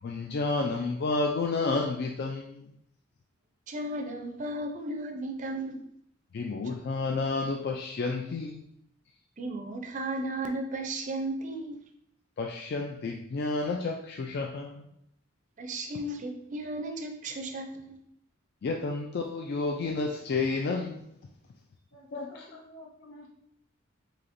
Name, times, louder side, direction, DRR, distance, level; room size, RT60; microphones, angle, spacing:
voice 1, 0.0-2.7 6.3-8.7 12.4-14.9 18.6-21.1 22.1-22.6, left 3 dB, 50° left, 1 dB, 0.3 m, -31 dB
voice 2, 3.7-5.8 9.4-11.8 15.6-18.0, right 1 dB, 35° right, 4 dB, 0.4 m, -35 dB
voice 3, 21.9-23.3, equal, 85° left, -6 dB, 1.5 m, -51 dB
4.9 x 2.8 x 2.5 m, 0.75 s
head